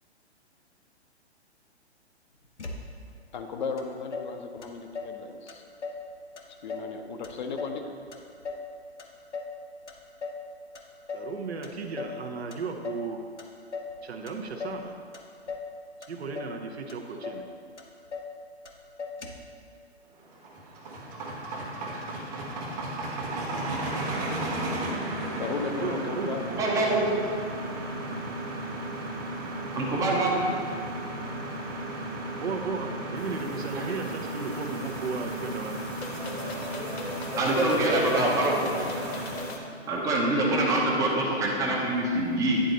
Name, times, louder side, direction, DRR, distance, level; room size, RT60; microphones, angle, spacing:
Motor vehicle (road), 2.6-3.2 3.8-3.9 4.1-5.2 5.5-6.1 6.4-6.9 7.2-8.7 9.0-9.6 9.9-10.5 10.7-11.3 11.6-12.2 12.5-13.1 13.4-14.0 14.3-14.8 15.1-15.7 16.0-16.6 16.9-17.0 17.2-17.5 17.8-18.3 18.6-18.7 19.0-19.5, left 4 dB, 85° left, 0.9 m, -38 dB
voice 1, 3.3-5.6 6.6-8.0 25.4-26.7, left 4 dB, 45° left, 5 dB, 0.6 m, -35 dB
voice 2, 11.1-13.2 14.0-14.9 16.1-17.4 25.8-26.4 32.4-35.8, right 4 dB, 70° right, 4 dB, 0.8 m, -35 dB
sound 1, 20.2-39.6, right 1 dB, 35° right, 1.2 m, -34 dB
voice 3, 26.5-27.2 29.8-30.4 33.8-33.9 37.4-39.1 39.9-42.6, right 2 dB, 10° right, -2 dB, 0.6 m, -25 dB
sound 2, 33.2-39.6, left 3 dB, 65° left, 1.2 m, -40 dB
9.9 x 4.0 x 3.9 m, 2.3 s
figure-of-eight pair, 125°, 34 cm